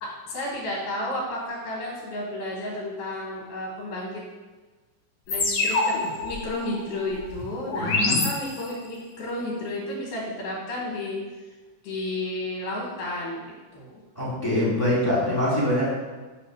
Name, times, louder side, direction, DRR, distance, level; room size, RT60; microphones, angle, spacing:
voice 1, 0.0-4.2 5.3-11.2 11.8-14.0, left 1 dB, 80° left, -5 dB, 3.0 m, -32 dB
sound 1, 5.3-9.0, left 3 dB, 65° left, 1.3 m, -27 dB
voice 2, 7.8-8.2 14.1-15.9, left 1 dB, 10° left, -7 dB, 1.2 m, -24 dB
7.2 x 3.5 x 6.0 m, 1.3 s
omnidirectional pair, 3.7 m